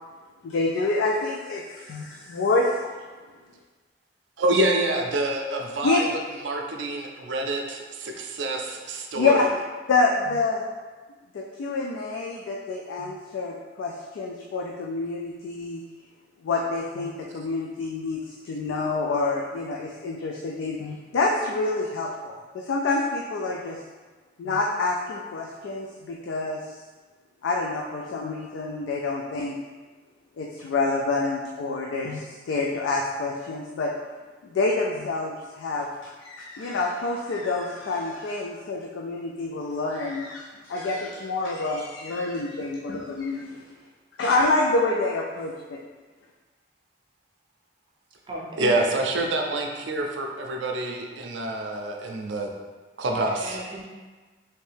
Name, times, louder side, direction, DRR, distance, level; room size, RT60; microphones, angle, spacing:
voice 1, 0.4-2.9 5.8-6.0 9.1-9.4 9.9-10.6 11.3-15.8 16.4-23.8 24.4-26.6 27.4-29.6 30.4-33.9 34.4-43.6 44.2-45.8, left 3 dB, 90° left, -1 dB, 0.3 m, -27 dB
voice 2, 4.4-6.1 6.4-9.4 48.6-52.5 53.0-53.6, right 2 dB, 80° right, 1 dB, 0.5 m, -27 dB
voice 3, 48.3-48.9 53.2-53.9, right 2 dB, 25° right, -3 dB, 0.5 m, -35 dB
3.2 x 2.6 x 3.3 m, 1.3 s
head